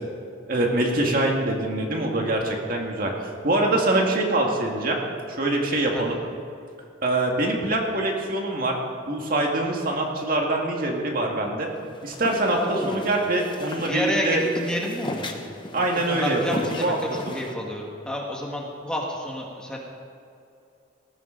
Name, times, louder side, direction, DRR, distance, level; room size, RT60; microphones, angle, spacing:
voice 1, 0.5-5.0 5.3-6.2 7.0-8.8 9.1-11.7 12.0-14.4 15.7-17.0 17.3-17.4, right 2 dB, 50° right, 0 dB, 2.0 m, -24 dB
sound 1, 11.8-17.5, left 1 dB, 25° left, 1.0 m, -37 dB
voice 2, 12.5-13.1 13.9-15.4 15.8-19.8, equal, 5° left, -2 dB, 1.9 m, -30 dB
19.0 x 14.5 x 4.0 m, 2.6 s
head